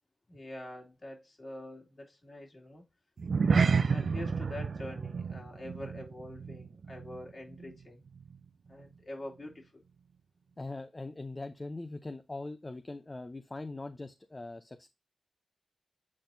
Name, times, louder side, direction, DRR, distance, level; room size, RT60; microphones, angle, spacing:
voice 1, 0.3-2.8 3.3-8.1 8.7-9.8, left 1 dB, 50° left, 2.5 m, -45 dB
sound 1, 3.2-7.8 8.1-8.4 8.8-8.9, right 5 dB, 70° right, 0.4 m, -30 dB
voice 2, 10.6-14.9, left 2 dB, 35° left, 0.6 m, -41 dB
8.5 x 4.2 x 2.6 m
cardioid pair, 45°, 0 cm